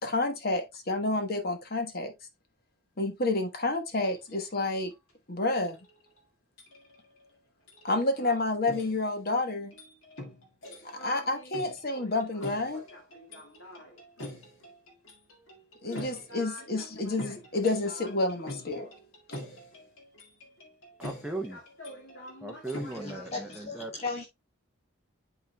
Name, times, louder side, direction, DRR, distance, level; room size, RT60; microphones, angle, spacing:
voice 1, 0.0-2.1 3.0-4.9 5.3-5.8 7.8-9.7 11.0-12.8 15.8-18.9, left 2 dB, 45° left, 1.2 m, -29 dB
sound 1, 4.1-4.3 4.6-4.9 5.5-6.2 6.6-7.3 7.7-8.4 8.7-23.6, left 1 dB, 80° left, 1.9 m, -45 dB
voice 2, 21.0-21.6 22.4-23.9, right 2 dB, 5° right, 0.6 m, -37 dB
voice 3, 22.9-24.2, left 3 dB, 30° left, 0.7 m, -36 dB
11.0 x 3.9 x 2.2 m
head